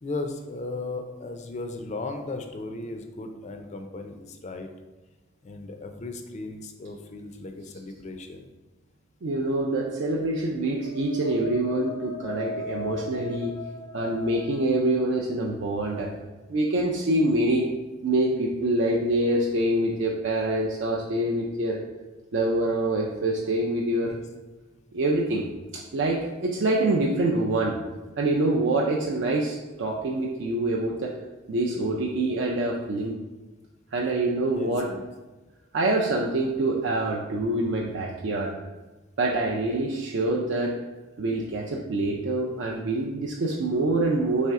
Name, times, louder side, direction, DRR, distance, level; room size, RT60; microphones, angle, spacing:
voice 1, 0.0-4.7 5.4-8.5 24.0-24.2 34.5-35.0, left 2 dB, 35° left, 6 dB, 0.4 m, -36 dB
voice 2, 9.2-13.5 13.9-16.1 16.5-17.6 18.0-21.8 22.3-24.1 24.9-25.4 25.7-27.8 28.2-31.1 31.5-33.2 33.9-34.9 35.7-38.5 39.2-40.7 41.2-44.5, right 2 dB, 60° right, -1 dB, 0.4 m, -25 dB
sound 1, 10.4-16.2, left 3 dB, 80° left, 0.7 m, -38 dB
4.2 x 3.3 x 3.5 m, 1.2 s
head